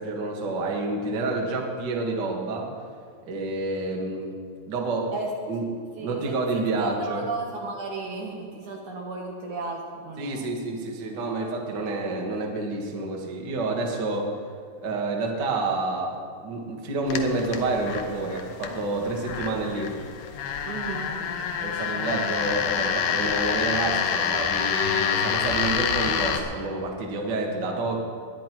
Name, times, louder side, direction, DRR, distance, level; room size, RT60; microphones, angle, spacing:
voice 1, 0.0-2.7 3.3-4.4 4.7-5.1 5.5-5.6 6.0-7.2 10.2-14.3 14.8-20.0 21.6-28.0, right 2 dB, 45° right, 0 dB, 1.4 m, -28 dB
voice 2, 6.0-10.5 20.7-21.2, right 4 dB, 65° right, 0 dB, 2.2 m, -34 dB
sound 1, 17.1-26.4, left 7 dB, 75° left, 2.4 m, -27 dB
20.5 x 10.5 x 4.6 m, 2.1 s
omnidirectional pair, 4.6 m